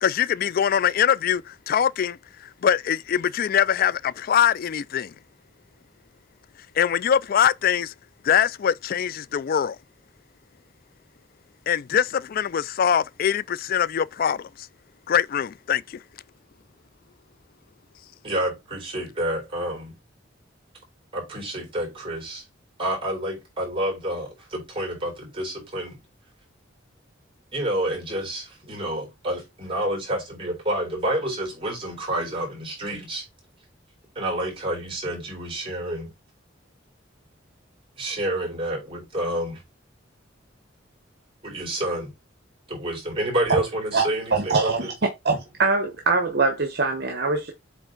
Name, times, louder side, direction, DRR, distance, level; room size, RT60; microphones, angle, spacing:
voice 1, 0.0-2.2 2.6-5.1 6.8-7.9 8.2-9.8 11.7-14.5 15.1-16.0, left 8 dB, 50° left, 0.3 m, -23 dB
voice 2, 18.2-20.0 21.1-22.4 22.8-26.0 27.5-33.2 34.2-36.1 38.0-39.6 41.4-42.1 42.7-44.9, right 1 dB, 30° right, 4.1 m, -29 dB
voice 3, 44.3-44.9 45.2-47.5, right 3 dB, 55° right, 1.1 m, -23 dB
7.9 x 3.5 x 3.9 m
head